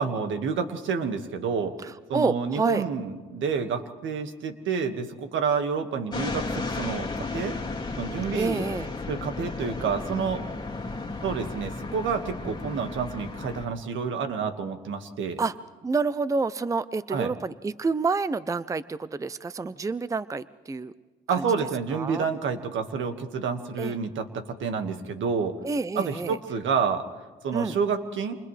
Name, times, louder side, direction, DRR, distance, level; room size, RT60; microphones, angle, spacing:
voice 1, 0.0-1.8 2.1-7.5 8.0-8.7 9.1-10.4 11.2-15.4 17.1-17.3 21.3-25.6 25.9-27.0 27.4-28.4, right 5 dB, 75° right, 7 dB, 1.8 m, -29 dB
voice 2, 1.8-2.8 8.3-8.9 15.4-15.5 15.8-20.9 21.3-21.5 21.9-22.3 23.8-23.9 25.6-26.4 27.5-27.8, right 4 dB, 15° right, 16 dB, 0.5 m, -28 dB
sound 1, 6.1-13.7, left 3 dB, 20° left, 2.3 m, -34 dB
28.5 x 28.0 x 3.3 m, 1.4 s
cardioid pair, 90°, 20 cm